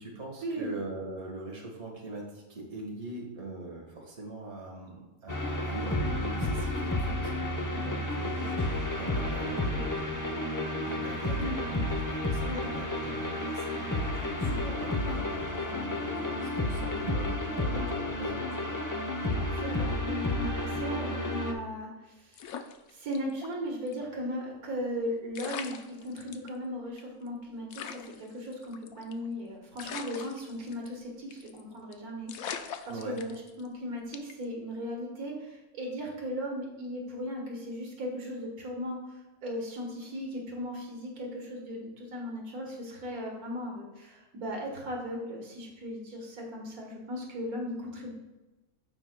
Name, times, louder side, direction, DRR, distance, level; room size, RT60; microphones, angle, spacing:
voice 1, 0.0-14.1 14.4-17.4 17.7-17.9 18.2-18.8 32.9-33.2, right 2 dB, 50° right, -1 dB, 1.9 m, -41 dB
sound 1, 5.3-21.5, left 1 dB, 20° left, 0.5 m, -31 dB
voice 2, 17.5-17.9 19.6-22.6 22.9-48.1, equal, 85° right, -1 dB, 1.9 m, -37 dB
sound 2, 22.3-23.5 23.9-24.0 25.0-25.1 25.3-26.5 27.0-27.1 27.3-27.4 27.7-29.3 29.8-31.0 31.3-31.6 31.9-32.0 32.3-33.7 34.1-34.4, left 7 dB, 75° left, 1.0 m, -41 dB
14.5 x 4.9 x 2.2 m, 1.1 s
omnidirectional pair, 1.5 m